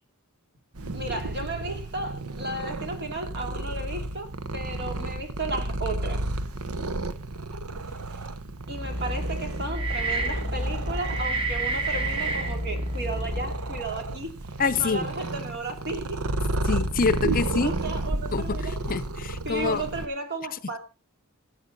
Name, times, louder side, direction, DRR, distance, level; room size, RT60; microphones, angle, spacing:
Purr, 0.7-20.1, right 2 dB, 80° right, 1.0 m, -32 dB
voice 1, 0.9-6.3 8.7-14.4 14.7-16.3 17.6-18.7 19.4-20.8, right 2 dB, 50° right, 2.8 m, -34 dB
sound 1, 8.6-13.9, right 1 dB, 25° right, 1.9 m, -30 dB
voice 2, 14.6-15.1 16.6-17.7 18.3-19.8, left 4 dB, 40° left, 0.6 m, -26 dB
15.5 x 9.1 x 4.0 m
head